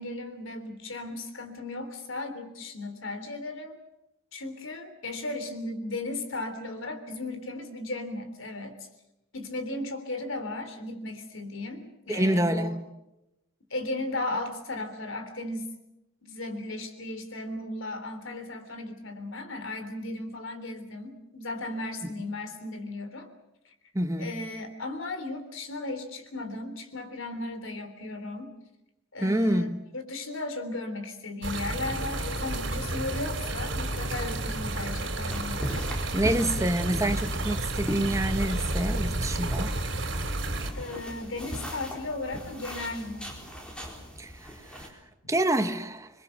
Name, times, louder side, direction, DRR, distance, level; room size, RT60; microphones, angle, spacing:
voice 1, 0.0-3.8 4.3-8.8 9.3-12.8 13.7-15.7 16.2-23.3 24.2-28.5 29.1-35.6 40.7-43.3 45.2-45.3, left 2 dB, 80° left, 3.6 m, -36 dB
voice 2, 12.1-12.8 23.9-24.4 29.2-29.8 36.1-39.8 44.2-44.9 45.3-46.1, right 1 dB, 15° right, 1.2 m, -27 dB
sound 1, 31.4-40.7, right 1 dB, 65° right, 3.5 m, -31 dB
sound 2, 35.3-44.9, equal, 5° left, 4.0 m, -39 dB
26.5 x 22.0 x 6.6 m
head